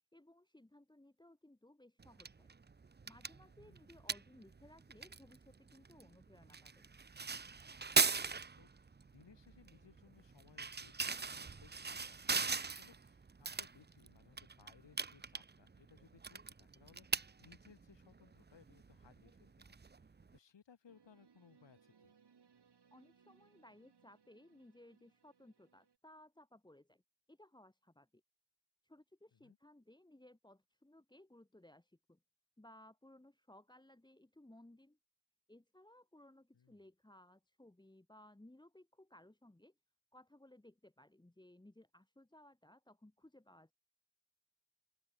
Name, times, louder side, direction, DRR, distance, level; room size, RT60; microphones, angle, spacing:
voice 1, 0.1-2.5 3.1-6.9 22.9-27.0 27.3-28.2 28.8-32.2 32.6-35.0 35.5-39.7 40.1-43.7, left 1 dB, 10° left, 2.3 m, -61 dB
sound 1, 2.0-20.4, right 4 dB, 25° right, 0.7 m, -41 dB
voice 2, 8.0-19.8 20.3-22.1 29.3-29.6 36.5-36.8, left 7 dB, 75° left, 3.9 m, -65 dB
sound 2, 20.9-26.0, right 6 dB, 65° right, 6.1 m, -69 dB
open air
wide cardioid pair, 165°, 43 cm